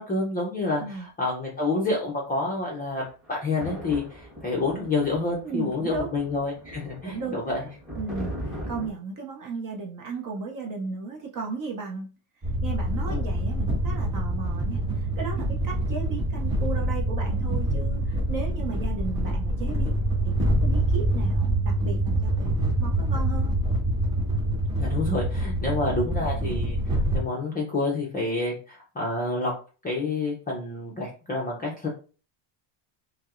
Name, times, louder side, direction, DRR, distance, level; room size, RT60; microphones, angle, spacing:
voice 1, 0.0-7.6 13.1-13.2 24.8-29.5 29.8-31.9, left 2 dB, 20° left, -4 dB, 0.4 m, -28 dB
sound 1, 2.8-8.9, equal, ahead, 1.0 m, -39 dB
voice 2, 5.4-6.1 7.0-7.7 7.9-12.1 12.6-22.5 22.8-23.5, right 5 dB, 40° right, 0 dB, 0.5 m, -35 dB
sound 2, 12.4-27.2, right 1 dB, 25° right, 1.5 m, -25 dB
5.4 x 2.0 x 2.4 m, 0.37 s
cardioid pair, 180°, 49 cm